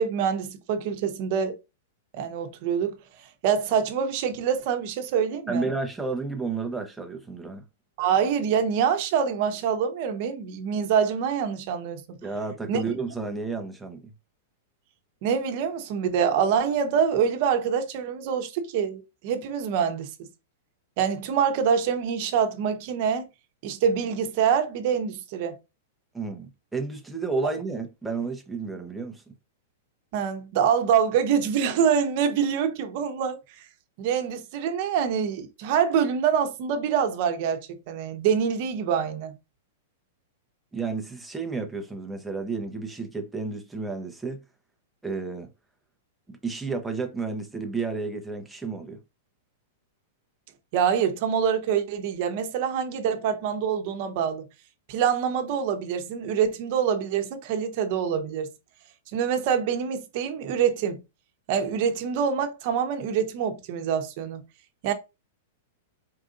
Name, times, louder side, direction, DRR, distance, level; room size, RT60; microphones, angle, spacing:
voice 1, 0.0-1.6 2.1-2.9 3.4-5.7 8.0-12.2 12.7-12.8 15.2-20.3 21.0-23.3 23.6-25.6 27.4-27.5 30.1-33.4 34.0-39.3 50.7-54.4 54.9-58.5 59.1-61.0 61.5-64.4 64.8-64.9, right 7 dB, 45° right, 1.0 m, -25 dB
voice 2, 5.5-7.6 12.2-14.1 26.1-29.3 40.7-44.4 45.0-45.5 46.3-49.0, right 4 dB, 5° right, 0.9 m, -31 dB
4.7 x 2.6 x 3.8 m
supercardioid pair, 155°, 0 cm